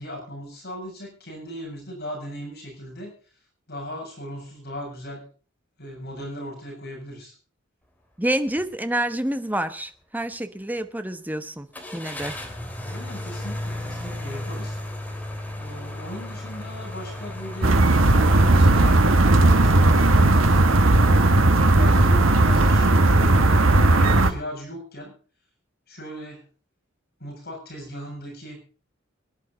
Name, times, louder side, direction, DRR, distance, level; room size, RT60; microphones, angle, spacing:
voice 1, 0.0-3.1 3.7-5.2 5.8-7.3 12.8-15.1 15.6-17.8 18.1-20.6 21.7-23.4 23.8-25.1 25.9-26.5 27.2-28.6, equal, 55° left, -1 dB, 7.0 m, -38 dB
voice 2, 8.2-11.7 11.9-12.4, right 1 dB, 10° right, 10 dB, 1.0 m, -28 dB
sound 1, 8.5-8.7 9.1-9.2 11.7-18.6, left 1 dB, 10° left, 2.7 m, -34 dB
sound 2, 17.6-24.3, right 2 dB, 85° right, 1.6 m, -16 dB
22.5 x 10.5 x 4.0 m, 0.38 s
head